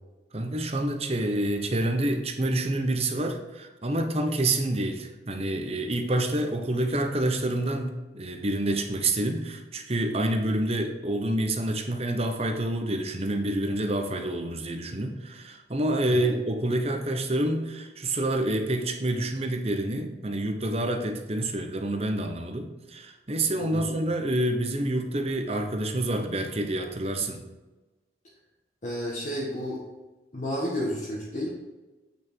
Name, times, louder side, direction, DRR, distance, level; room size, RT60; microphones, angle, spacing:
voice 1, 0.3-27.4, right 1 dB, 35° right, 4 dB, 1.0 m, -28 dB
voice 2, 23.6-24.0 28.8-29.8 30.3-31.5, equal, 45° left, -5 dB, 1.5 m, -31 dB
8.4 x 6.4 x 4.6 m, 1.1 s
head